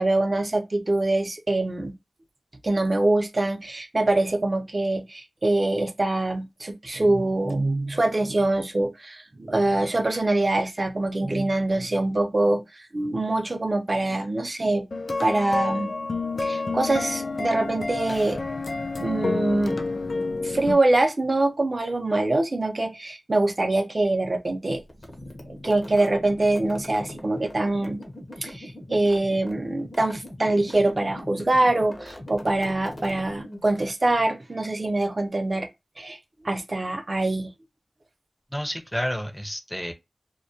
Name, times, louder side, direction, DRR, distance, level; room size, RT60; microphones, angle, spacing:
voice 1, 0.0-2.0 2.6-12.6 12.9-15.9 16.4-18.4 19.0-19.8 20.4-24.8 25.5-28.0 28.4-35.7 36.0-36.2 36.4-37.5, right 2 dB, 50° right, 0.5 m, -24 dB
sound 1, 14.9-20.7, left 3 dB, 75° left, 0.4 m, -29 dB
sound 2, 24.9-33.9, left 1 dB, 45° left, 0.7 m, -41 dB
voice 2, 38.5-39.9, equal, 5° left, 0.6 m, -30 dB
2.2 x 2.1 x 2.7 m
cardioid pair, 45°, 0 cm